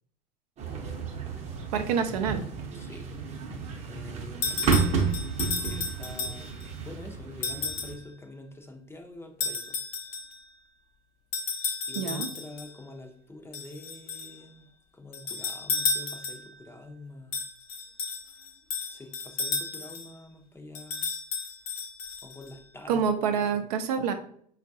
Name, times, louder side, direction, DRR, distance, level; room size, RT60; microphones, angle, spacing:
sound 1, 0.6-7.9, right 5 dB, 30° right, 0.8 m, -31 dB
voice 1, 1.7-2.4 12.0-12.3 22.9-24.1, right 6 dB, 70° right, 6 dB, 0.5 m, -27 dB
voice 2, 2.7-3.1 3.9-5.2 5.6-9.8 11.9-14.7 14.9-17.4 18.9-21.1 22.2-23.1 23.5-23.6, left 2 dB, 10° left, 4 dB, 0.6 m, -46 dB
sound 2, 4.4-6.7 7.4-8.0 9.4-10.4 11.3-12.7 13.5-14.4 15.1-16.6 17.3-20.1 20.8-22.5, left 4 dB, 65° left, 0.7 m, -33 dB
4.4 x 2.3 x 2.7 m, 0.62 s
hypercardioid pair, 80°, 21 cm